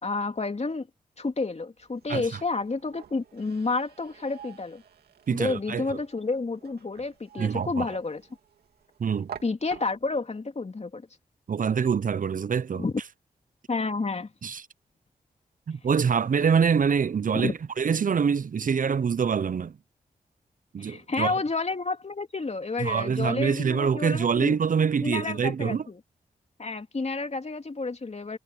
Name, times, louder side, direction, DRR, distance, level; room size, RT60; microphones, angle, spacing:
voice 1, 0.0-0.9 1.2-4.8 5.3-8.2 9.4-11.1 12.7-13.0 13.7-14.3 17.4-17.5 20.8-24.5 25.0-26.0 26.6-28.4, left 3 dB, 45° left, 2.9 m, -30 dB
sound 1, 1.8-10.3, right 8 dB, 85° right, 2.4 m, -49 dB
voice 2, 2.1-2.4 5.3-6.0 7.4-7.9 9.0-9.3 11.5-12.8 14.4-14.7 15.7-19.8 20.7-21.4 22.8-25.8, right 6 dB, 60° right, 0.7 m, -25 dB
supercardioid pair, 40°, 16 cm